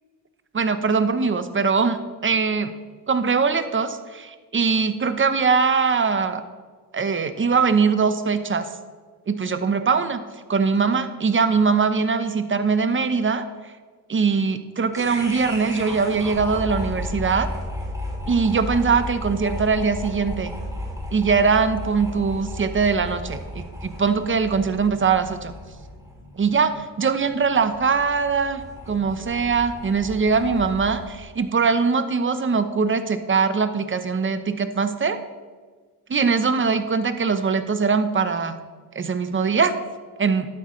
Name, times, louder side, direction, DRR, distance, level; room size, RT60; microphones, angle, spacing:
voice 1, 0.5-2.7 3.1-6.4 6.9-8.7 9.3-10.2 10.5-13.4 14.1-17.5 18.3-20.5 21.1-25.5 26.4-35.2 36.1-38.6 38.9-39.7 40.2-40.5, right 5 dB, 30° right, 10 dB, 0.9 m, -22 dB
sound 1, 14.9-31.1, left 1 dB, 10° right, 3.0 m, -34 dB
12.0 x 11.5 x 3.2 m, 1.5 s
cardioid pair, 95°, 42 cm